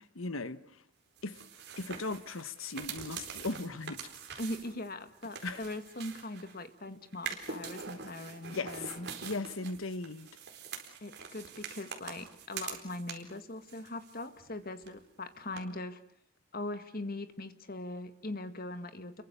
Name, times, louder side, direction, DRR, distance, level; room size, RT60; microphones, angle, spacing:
voice 1, 0.2-0.8 1.2-1.4 1.8-4.0 5.4-5.6 8.5-10.3, left 3 dB, 75° left, 1.3 m, -38 dB
sound 1, 1.2-6.7 7.1-13.4 13.7-14.6 14.8-14.9 15.6-15.7, right 6 dB, 50° right, 4.3 m, -44 dB
voice 2, 4.4-9.1 11.0-16.0 16.5-19.2, left 2 dB, 45° left, 1.9 m, -41 dB
29.5 x 23.0 x 6.9 m
head